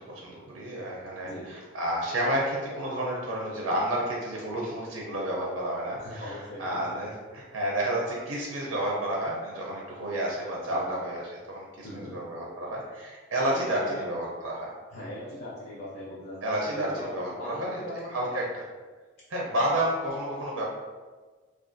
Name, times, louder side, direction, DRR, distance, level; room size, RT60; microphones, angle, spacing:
voice 1, 0.1-11.2 11.5-14.7 16.4-17.8 18.1-18.4 19.3-20.6, right 1 dB, 90° right, -3 dB, 0.5 m, -30 dB
voice 2, 6.0-7.0 10.7-11.0 11.8-12.1 13.5-14.1 14.9-18.4, equal, 50° left, -6 dB, 0.5 m, -40 dB
2.4 x 2.3 x 2.5 m, 1.4 s
head